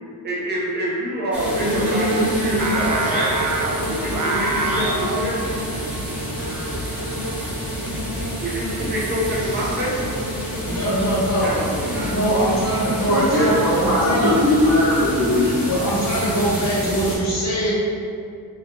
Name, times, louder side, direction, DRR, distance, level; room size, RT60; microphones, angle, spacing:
voice 1, 0.2-3.3 3.9-5.5 8.4-9.9 11.4-12.1, right 1 dB, 25° right, -7 dB, 0.9 m, -26 dB
sound 1, 1.3-17.2, equal, 5° right, 1.0 m, -27 dB
Singing, 2.6-7.8, right 2 dB, 50° right, 0.4 m, -28 dB
voice 2, 10.6-11.7 12.0-14.3 15.7-17.7, right 1 dB, 40° left, -7 dB, 1.0 m, -22 dB
voice 3, 13.0-15.6, left 1 dB, 70° right, -13 dB, 1.3 m, -19 dB
4.7 x 3.2 x 2.9 m, 2.3 s
wide cardioid pair, 140°, 39 cm